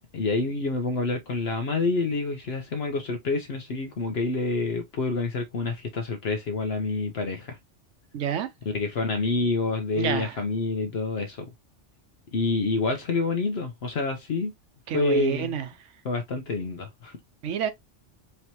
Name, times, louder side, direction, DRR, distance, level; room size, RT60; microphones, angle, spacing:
voice 1, 0.1-7.6 8.6-11.5 12.3-14.5 14.9-15.5 16.0-17.2, left 3 dB, 60° left, 1.0 m, -27 dB
voice 2, 8.1-8.5 10.0-10.3 14.9-15.7 17.4-17.7, right 8 dB, 90° right, 1.0 m, -28 dB
4.5 x 3.1 x 2.8 m
omnidirectional pair, 1.2 m